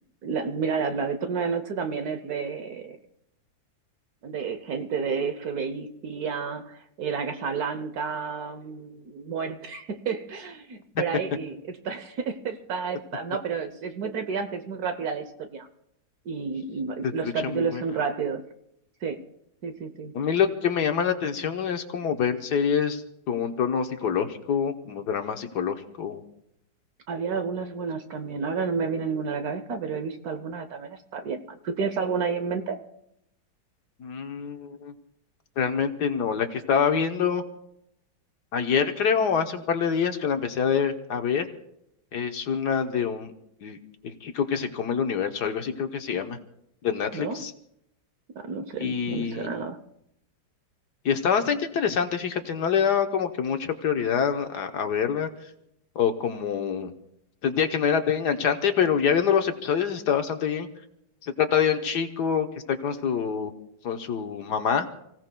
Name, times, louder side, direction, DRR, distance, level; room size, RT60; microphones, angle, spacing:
voice 1, 0.2-3.0 4.2-15.7 16.3-18.4 19.0-19.2 19.6-20.1 27.1-32.8 47.1-47.4 48.3-49.8, right 5 dB, 60° right, 9 dB, 1.1 m, -30 dB
voice 2, 17.4-17.8 20.1-23.0 23.3-26.2 34.0-34.9 35.6-37.4 38.5-41.5 42.1-43.3 43.6-43.8 44.0-46.4 46.8-47.5 48.8-49.5 51.0-55.3 55.9-56.9 57.4-60.7 61.2-63.5 63.8-64.9, left 7 dB, 60° left, 6 dB, 1.4 m, -26 dB
29.5 x 16.5 x 2.2 m, 0.78 s
omnidirectional pair, 2.1 m